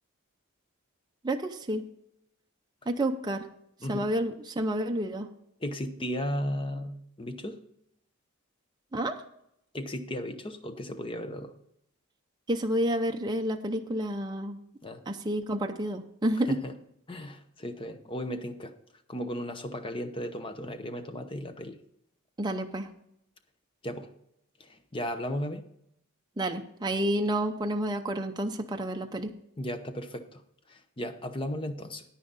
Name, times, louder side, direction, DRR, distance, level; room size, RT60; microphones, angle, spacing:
voice 1, 1.2-1.8 2.9-3.5 3.9-5.3 8.9-9.2 12.5-14.6 15.1-16.6 22.4-22.9 26.4-29.3, right 1 dB, 20° right, 3 dB, 0.6 m, -29 dB
voice 2, 5.6-7.6 9.7-11.5 14.8-15.0 16.5-16.7 17.1-18.7 19.1-21.8 23.8-24.1 24.6-25.6 29.6-30.4 30.7-32.0, equal, 25° left, 8 dB, 0.8 m, -35 dB
9.9 x 9.7 x 4.1 m, 0.75 s
head